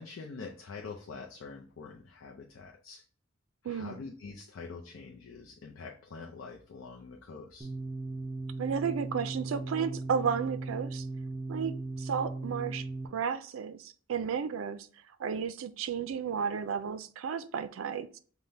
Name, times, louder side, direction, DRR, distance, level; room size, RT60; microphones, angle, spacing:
voice 1, 0.0-3.0 3.6-7.7, left 4 dB, 75° left, 0.5 m, -45 dB
voice 2, 3.6-4.0 8.6-11.1 11.5-12.8 13.1-14.9 15.2-18.2, right 6 dB, 80° right, 0.4 m, -33 dB
sound 1, 7.6-13.1, right 2 dB, 20° right, 0.6 m, -37 dB
5.4 x 2.1 x 3.2 m
head